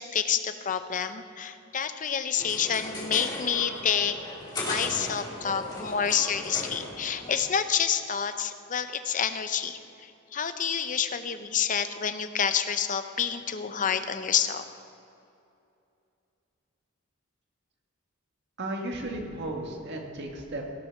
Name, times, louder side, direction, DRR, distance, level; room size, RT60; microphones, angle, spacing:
voice 1, 0.0-4.2 4.6-14.6, left 7 dB, 40° left, 10 dB, 0.6 m, -28 dB
sound 1, 2.4-7.4, left 1 dB, 20° left, 2.7 m, -37 dB
voice 2, 18.6-20.7, right 1 dB, 55° right, 1 dB, 1.7 m, -34 dB
17.0 x 6.9 x 5.9 m, 2.6 s
head